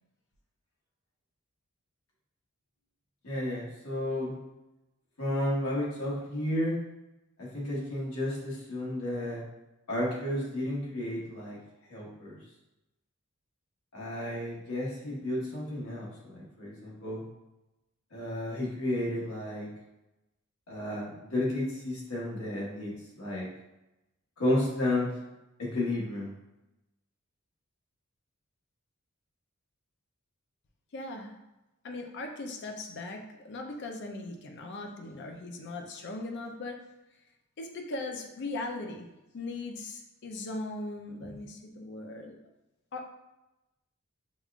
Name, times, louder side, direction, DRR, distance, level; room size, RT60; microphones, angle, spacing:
voice 1, 3.2-4.3 5.2-6.8 7.4-9.4 9.9-11.6 11.9-12.3 13.9-17.2 18.1-19.7 20.7-23.5 24.4-25.1 25.6-26.3 41.3-41.4, left 1 dB, 80° left, -5 dB, 1.3 m, -32 dB
voice 2, 30.9-31.3 31.8-36.8 37.6-39.1 39.3-42.4 42.9-43.1, left 2 dB, 55° left, 3 dB, 0.5 m, -39 dB
5.3 x 2.3 x 2.4 m, 0.97 s
head